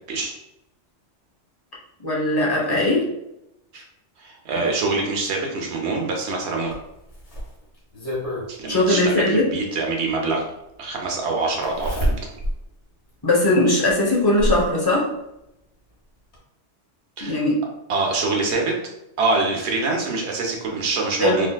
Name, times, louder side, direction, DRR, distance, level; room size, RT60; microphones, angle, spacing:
voice 1, 2.0-3.0 8.7-9.5 13.2-15.1 17.2-17.6 21.2-21.5, left 1 dB, 25° left, -4 dB, 0.6 m, -19 dB
voice 2, 4.2-6.7 8.5-10.4 10.8-12.1 17.2-17.4 17.9-18.8 19.2-21.5, right 3 dB, 70° right, 0 dB, 1.0 m, -25 dB
Zipper (clothing), 6.7-8.5 9.9-10.0 11.6-12.6 13.1-13.2 13.9-14.7 15.9-16.0 16.3-16.4, equal, 65° left, 1.4 m, -27 dB
3.4 x 2.6 x 2.2 m, 0.85 s
omnidirectional pair, 1.2 m